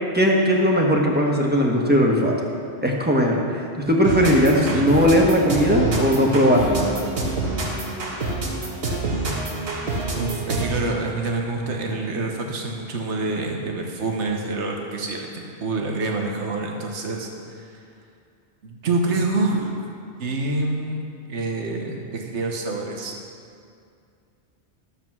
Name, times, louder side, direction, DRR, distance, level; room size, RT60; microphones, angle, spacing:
voice 1, 0.1-2.4 2.8-3.6 3.9-6.8, equal, 10° right, -1 dB, 1.3 m, -18 dB
sound 1, 4.0-10.9, right 2 dB, 60° right, 1.5 m, -27 dB
voice 2, 10.1-17.8 18.6-19.8 20.2-21.0 21.3-23.1, right 2 dB, 80° right, 1 dB, 1.4 m, -27 dB
12.0 x 7.4 x 6.1 m, 2.4 s
omnidirectional pair, 1.2 m